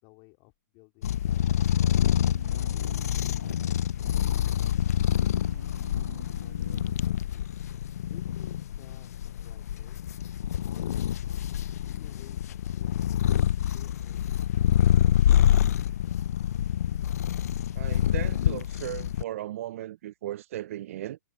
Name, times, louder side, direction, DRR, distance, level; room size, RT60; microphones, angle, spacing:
voice 1, 0.0-3.8 5.4-7.5 8.1-10.1 10.6-11.1 11.8-13.1 13.7-15.3 15.8-16.1, left 31 dB, 35° left, 4.3 m, -57 dB
sound 1, 1.0-19.2, left 10 dB, 60° left, 0.6 m, -26 dB
sound 2, 1.3-6.9, right 5 dB, 85° right, 1.6 m, -48 dB
voice 2, 17.7-21.2, right 13 dB, 50° right, 0.6 m, -36 dB
hypercardioid pair, 130°, 9 cm